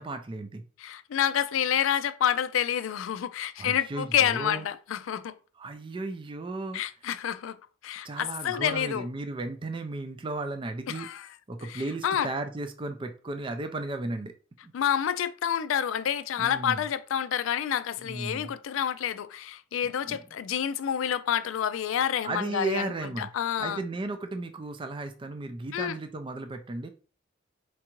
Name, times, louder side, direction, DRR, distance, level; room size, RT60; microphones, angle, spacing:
voice 1, 0.0-0.6 3.6-4.6 5.6-6.8 8.0-11.1 11.5-14.3 14.6-14.7 16.4-16.8 18.0-18.5 20.1-20.2 22.2-23.3 23.6-26.9, right 2 dB, 25° right, 0.4 m, -35 dB
voice 2, 0.8-5.3 6.7-7.6 7.8-9.0 10.9-11.3 11.6-12.3 14.7-22.9 23.2-23.8 25.7-26.0, left 9 dB, 75° left, 0.3 m, -28 dB
4.5 x 2.5 x 2.9 m
head